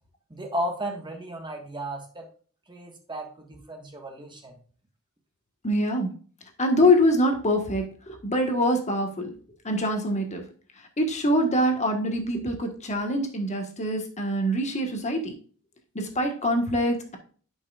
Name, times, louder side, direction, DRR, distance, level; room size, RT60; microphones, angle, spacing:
voice 1, 0.3-2.3 2.7-4.5, right 1 dB, 20° right, 3 dB, 1.5 m, -34 dB
voice 2, 5.6-6.1 6.6-9.3 9.6-10.4 11.0-15.4 15.9-17.2, left 1 dB, 30° left, 3 dB, 1.5 m, -24 dB
10.5 x 5.6 x 2.4 m, 0.42 s
head